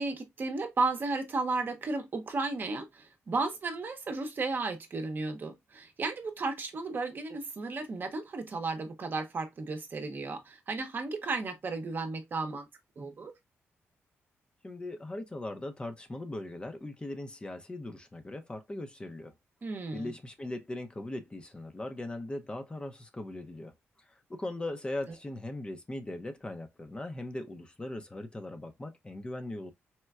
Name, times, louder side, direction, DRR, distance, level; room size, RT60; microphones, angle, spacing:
voice 1, 0.0-12.7 13.0-13.3 19.6-20.1, right 3 dB, 45° right, 0.8 m, -34 dB
voice 2, 14.6-19.3 19.9-23.7 24.3-29.7, left 1 dB, 20° left, 0.6 m, -39 dB
4.3 x 2.2 x 2.3 m
cardioid pair, 95°, 5 cm